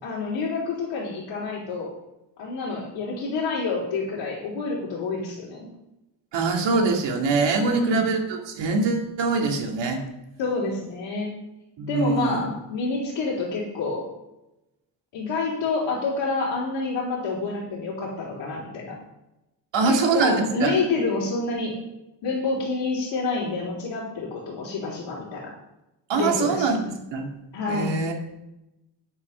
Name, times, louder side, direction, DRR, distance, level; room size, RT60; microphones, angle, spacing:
voice 1, 0.0-1.9 2.4-5.7 7.7-8.1 10.4-11.3 11.9-14.1 15.1-19.0 19.8-21.8 22.2-25.5 26.1-26.7 27.5-27.9, left 3 dB, 75° left, -7 dB, 3.6 m, -28 dB
voice 2, 6.3-10.0 11.8-12.5 19.7-20.8 26.1-27.3 27.7-28.2, right 3 dB, 70° right, 2 dB, 2.5 m, -23 dB
11.5 x 7.9 x 5.7 m, 0.91 s
cardioid pair, 150°, 44 cm